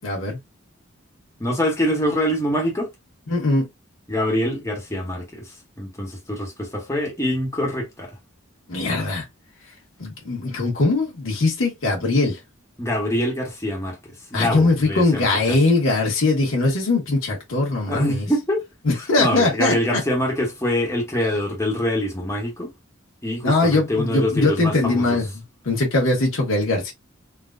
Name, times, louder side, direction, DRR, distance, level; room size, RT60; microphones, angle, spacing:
voice 1, 0.0-0.4 3.3-3.7 8.7-9.2 10.0-12.4 14.3-18.3 18.8-20.0 23.4-25.3 25.6-26.9, left 2 dB, 90° left, 1.4 m, -21 dB
voice 2, 1.4-2.9 4.1-5.5 5.8-8.1 12.8-14.0 14.3-15.6 17.9-18.6 19.2-22.7 23.2-25.2, equal, 15° left, 1.1 m, -24 dB
3.9 x 2.3 x 2.4 m
head